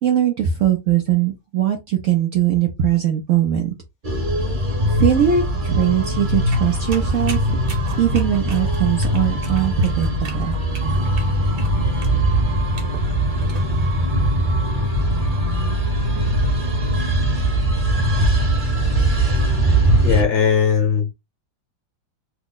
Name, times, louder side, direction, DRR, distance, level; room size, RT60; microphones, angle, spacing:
voice 1, 0.0-3.7 4.4-4.6 4.8-7.6 8.0-10.5, right 9 dB, 80° right, 0.7 m, -20 dB
sound 1, 4.0-20.2, right 1 dB, 35° right, 0.8 m, -20 dB
sound 2, 6.5-13.6, right 5 dB, 60° right, 1.3 m, -39 dB
voice 2, 20.0-21.1, left 7 dB, 60° left, 1.2 m, -18 dB
3.4 x 2.0 x 3.7 m
omnidirectional pair, 2.1 m